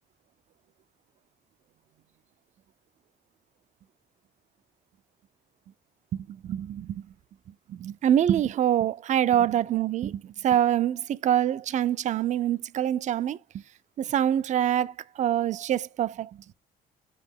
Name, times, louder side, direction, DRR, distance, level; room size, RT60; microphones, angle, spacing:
voice 1, 6.1-7.1 7.7-13.4 14.0-16.3, right 10 dB, 45° right, 0.4 m, -25 dB
5.4 x 5.3 x 3.5 m
cardioid pair, 110°, 17 cm